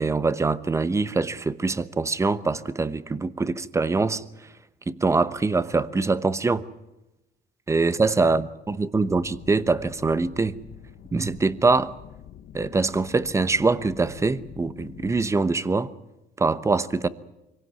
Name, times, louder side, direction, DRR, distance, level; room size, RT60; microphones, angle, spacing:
voice 1, 0.0-4.2 4.9-6.6 7.7-10.6 11.1-11.9 12.5-15.9 16.4-17.1, right 3 dB, 15° right, 1.0 m, -23 dB
sound 1, 9.0-15.4, left 11 dB, 60° left, 1.0 m, -45 dB
24.5 x 17.0 x 9.3 m
cardioid pair, 110°, 17 cm